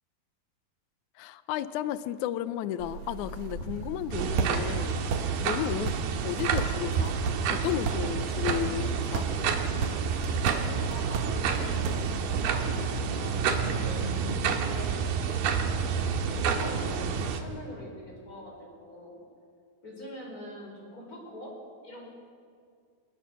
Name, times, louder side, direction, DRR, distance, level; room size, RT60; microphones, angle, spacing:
voice 1, 1.2-5.9 6.2-7.2 7.5-9.3 14.4-14.6, left 12 dB, 80° left, 14 dB, 1.8 m, -33 dB
sound 1, 2.8-12.4, right 5 dB, 60° right, 2.4 m, -35 dB
sound 2, 4.1-17.4, right 6 dB, 90° right, 3.2 m, -29 dB
sound 3, 8.8-17.2, right 2 dB, 40° right, 3.5 m, -41 dB
voice 2, 10.8-14.2 14.5-15.5 16.3-19.2 19.8-21.5 21.8-22.1, equal, 25° left, -1 dB, 5.2 m, -44 dB
22.5 x 20.0 x 6.8 m, 2.2 s
omnidirectional pair, 4.2 m